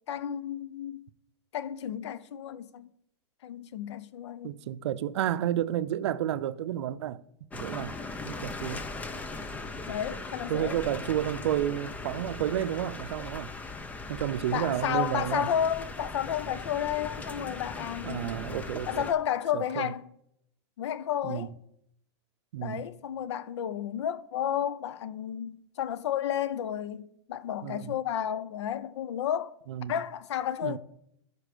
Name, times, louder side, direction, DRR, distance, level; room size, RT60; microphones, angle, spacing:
voice 1, 0.1-1.0 1.5-2.9 3.4-4.5 9.9-10.8 14.5-18.3 18.9-20.1 20.8-21.5 22.6-29.6 29.9-30.8, left 10 dB, 85° left, 0.6 m, -32 dB
voice 2, 4.4-7.2 7.5-8.0 8.2-8.8 10.5-13.5 14.1-15.5 18.0-19.1 19.5-19.9 21.2-21.5 22.5-22.8 27.6-27.9 29.7-30.0 30.6-30.8, right 11 dB, 80° right, 0.5 m, -31 dB
sound 1, 7.5-19.1, left 3 dB, 10° left, 0.5 m, -39 dB
11.0 x 4.6 x 5.0 m
supercardioid pair, 145°, 14 cm